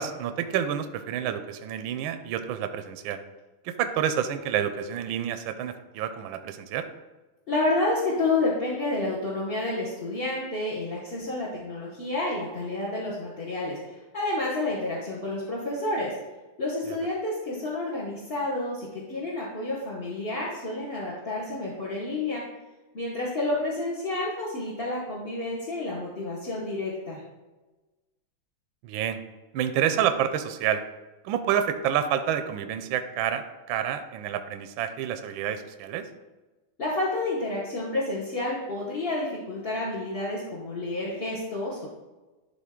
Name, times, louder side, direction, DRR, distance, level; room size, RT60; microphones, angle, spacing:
voice 1, 0.0-3.2 3.6-6.8 16.9-17.0 28.8-29.2 29.5-30.8 31.2-36.1, right 9 dB, 75° right, 9 dB, 1.3 m, -28 dB
voice 2, 7.5-16.1 16.6-22.4 22.9-27.2 36.8-41.9, left 2 dB, 35° left, -6 dB, 1.1 m, -30 dB
11.5 x 3.9 x 3.7 m, 1.2 s
omnidirectional pair, 2.3 m